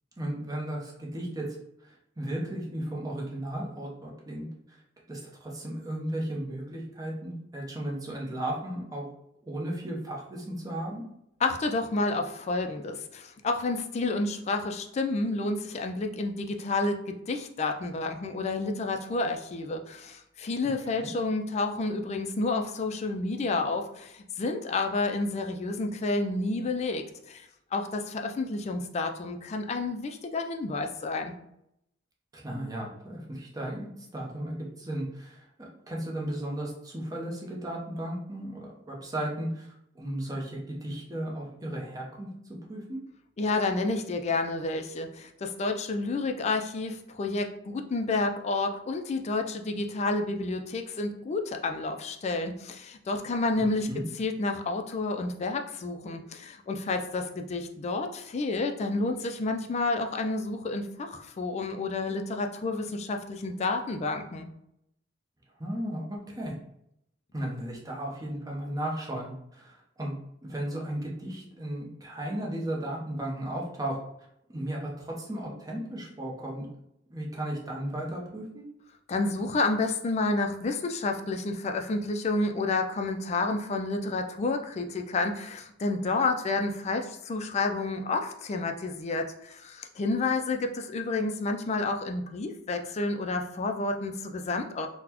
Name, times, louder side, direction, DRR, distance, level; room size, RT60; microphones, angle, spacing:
voice 1, 0.2-1.6 1.8-4.8 5.1-9.1 9.5-11.0 20.6-21.1 32.3-39.7 39.9-42.3 42.7-43.0 53.6-54.0 65.6-66.6 67.3-70.1 70.4-74.0 74.5-76.7 77.1-78.6, right 1 dB, 20° right, -2 dB, 0.7 m, -35 dB
voice 2, 11.4-31.3 43.4-53.9 54.2-64.5 79.1-94.9, left 3 dB, 35° left, 5 dB, 0.3 m, -30 dB
3.9 x 2.1 x 2.8 m, 0.78 s
head